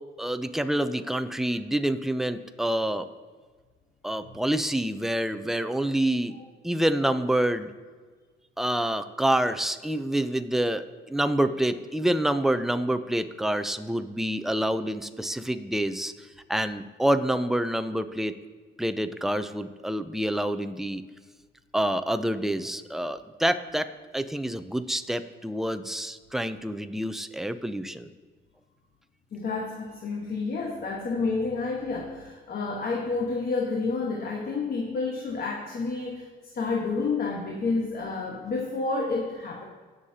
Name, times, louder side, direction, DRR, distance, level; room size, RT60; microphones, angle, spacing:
voice 1, 0.2-3.1 4.0-6.4 6.6-7.7 8.6-18.3 18.8-21.0 21.7-28.1, right 1 dB, ahead, 10 dB, 0.6 m, -27 dB
voice 2, 29.3-36.3 36.5-39.6, left 3 dB, 50° left, 0 dB, 1.3 m, -29 dB
18.5 x 6.6 x 2.8 m, 1.4 s
cardioid pair, 90°, 20 cm